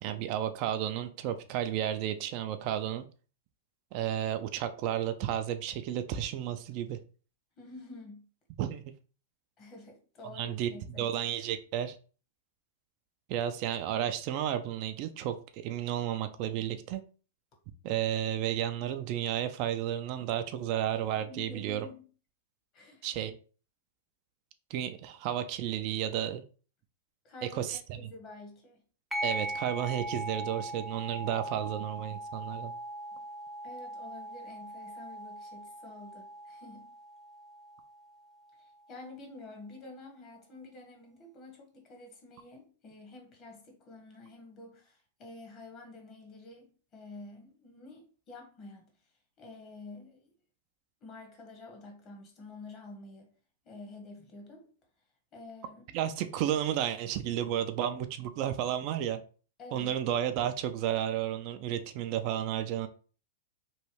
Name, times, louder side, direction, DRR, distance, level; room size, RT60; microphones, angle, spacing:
voice 1, 0.0-3.0 3.9-7.0 8.6-8.8 10.3-10.7 11.0-12.0 13.3-17.0 17.8-21.9 23.0-23.4 24.7-26.4 27.5-28.0 29.2-32.7 55.9-59.2 59.7-62.9, right 11 dB, 50° right, 0.3 m, -32 dB
voice 2, 7.6-8.2 9.6-11.1 21.1-22.0 22.7-23.1 27.2-28.8 33.1-33.2 33.6-36.9 38.6-48.9 49.4-50.3 51.0-53.3 53.6-54.7 55.3-55.8 59.6-60.0, left 2 dB, 35° left, 1.1 m, -49 dB
sound 1, 29.1-38.1, right 1 dB, 5° right, 0.6 m, -40 dB
3.1 x 2.3 x 3.1 m
hypercardioid pair, 115°, 0 cm